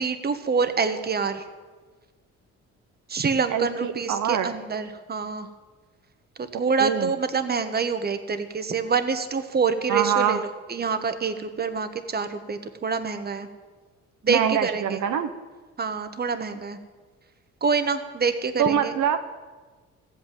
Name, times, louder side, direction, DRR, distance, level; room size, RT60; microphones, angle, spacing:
voice 1, 0.0-1.4 3.1-5.5 6.4-13.5 14.2-15.0 15.8-16.8 17.6-18.9, right 5 dB, 30° right, 9 dB, 1.3 m, -26 dB
voice 2, 3.5-4.5 6.8-7.1 9.9-10.4 14.3-15.3 18.6-19.2, right 9 dB, 75° right, 7 dB, 0.9 m, -24 dB
14.5 x 8.4 x 9.1 m, 1.3 s
cardioid pair, 90°, 30 cm